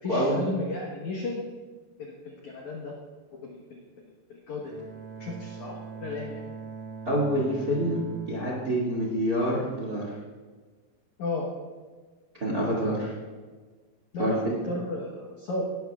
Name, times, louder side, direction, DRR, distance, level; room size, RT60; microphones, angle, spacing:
voice 1, 0.0-1.4 2.0-2.9 3.3-3.8 4.3-4.7 5.2-6.4 11.2-11.5 14.1-15.6, left 2 dB, 75° left, -1 dB, 1.7 m, -34 dB
Bowed string instrument, 4.6-9.6, right 5 dB, 80° right, 6.7 m, -42 dB
voice 2, 7.0-8.0 8.3-10.0 12.4-13.1 14.2-14.6, equal, 30° right, -4 dB, 1.7 m, -26 dB
18.5 x 12.5 x 2.4 m, 1.4 s
omnidirectional pair, 5.3 m